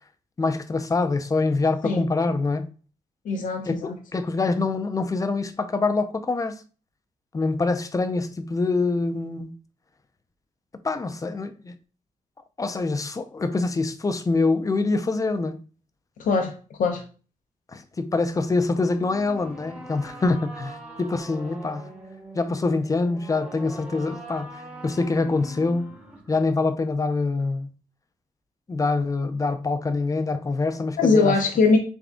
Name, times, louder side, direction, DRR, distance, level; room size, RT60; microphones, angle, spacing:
voice 1, 0.4-2.7 3.7-6.6 7.3-9.5 10.8-11.7 12.6-15.6 17.7-21.9 22.3-25.9 26.3-27.7 28.7-31.4, left 3 dB, 25° left, 0.5 m, -25 dB
voice 2, 3.2-4.0 16.2-17.0 31.0-31.8, left 4 dB, 70° left, 0.7 m, -21 dB
sound 1, 18.5-26.5, right 1 dB, 10° right, 1.0 m, -42 dB
3.7 x 3.5 x 3.5 m
wide cardioid pair, 115°, 14 cm